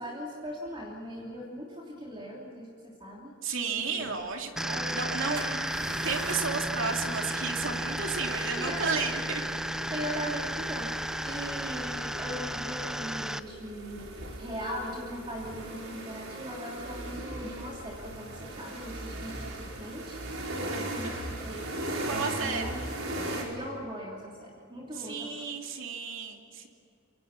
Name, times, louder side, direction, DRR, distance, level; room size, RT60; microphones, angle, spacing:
voice 1, 0.0-3.3 3.8-4.2 4.7-6.1 8.2-9.2 9.9-22.9 23.3-25.4, equal, 25° right, -2 dB, 3.1 m, -40 dB
voice 2, 3.4-5.4 5.8-9.4 22.1-22.8 24.9-26.7, right 4 dB, 65° right, 3 dB, 2.8 m, -33 dB
sound 1, 4.2-4.3 5.3-23.4, right 1 dB, 90° right, 5.1 m, -39 dB
sound 2, 4.6-13.4, right 1 dB, 5° right, 0.6 m, -33 dB
27.0 x 24.5 x 6.0 m, 2.6 s
head